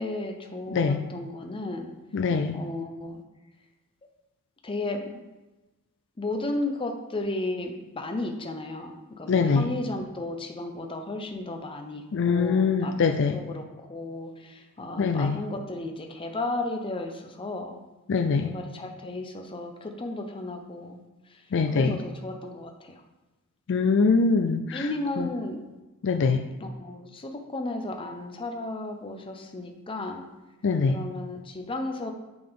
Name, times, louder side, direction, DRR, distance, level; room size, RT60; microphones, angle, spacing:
voice 1, 0.0-1.9 2.5-3.2 4.6-5.0 6.2-12.9 13.3-17.8 18.4-21.0 21.3-21.4 21.7-23.0 24.7-25.6 26.6-30.3 30.9-32.1, left 2 dB, 25° left, 4 dB, 0.7 m, -34 dB
voice 2, 2.1-2.6 9.3-9.7 12.1-13.4 15.0-15.4 18.1-18.5 21.5-22.0 23.7-24.9 25.2-25.3 26.0-26.4 30.6-31.0, left 4 dB, 55° left, 6 dB, 0.4 m, -23 dB
7.9 x 5.1 x 3.6 m, 1.1 s
head